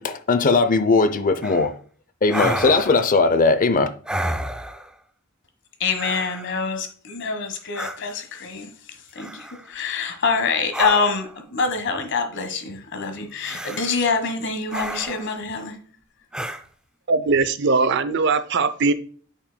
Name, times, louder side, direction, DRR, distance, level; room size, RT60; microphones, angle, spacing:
voice 1, 0.0-1.7 2.2-3.9, left 3 dB, 40° left, 0.6 m, -19 dB
sound 1, 1.4-1.7 2.3-3.1 4.1-4.9 6.0-6.6 7.7-8.0 9.2-9.7 10.7-11.4 13.4-14.0 14.7-15.4 16.3-16.6, right 1 dB, 5° right, 0.4 m, -30 dB
voice 2, 5.8-8.7 9.1-15.8, left 4 dB, 60° left, 1.4 m, -25 dB
voice 3, 17.1-18.9, right 4 dB, 55° right, 0.6 m, -20 dB
8.3 x 6.1 x 2.2 m
head